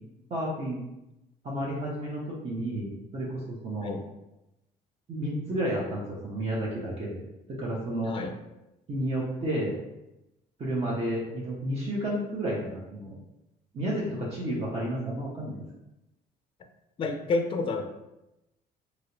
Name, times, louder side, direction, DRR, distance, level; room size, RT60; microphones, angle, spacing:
voice 1, 0.3-0.8 1.4-4.0 5.1-7.2 7.5-8.2 8.9-9.8 10.6-13.2 13.7-15.6, right 1 dB, 35° right, -6 dB, 0.8 m, -31 dB
voice 2, 17.0-17.9, left 3 dB, 30° left, 6 dB, 0.4 m, -29 dB
3.0 x 2.9 x 2.9 m, 0.93 s
cardioid pair, 110°, 17 cm